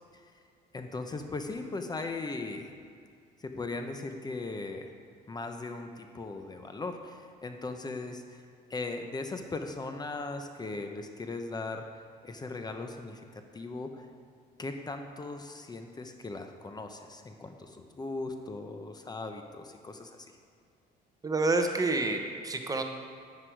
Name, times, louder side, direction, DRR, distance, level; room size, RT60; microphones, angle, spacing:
voice 1, 0.7-2.7 3.4-4.9 5.3-8.4 8.7-13.2 13.5-14.1 14.6-20.4, left 3 dB, 25° left, 5 dB, 0.8 m, -38 dB
voice 2, 21.2-22.8, right 3 dB, 20° right, 5 dB, 0.9 m, -28 dB
9.8 x 9.6 x 4.7 m, 2.3 s
cardioid pair, 110°, 17 cm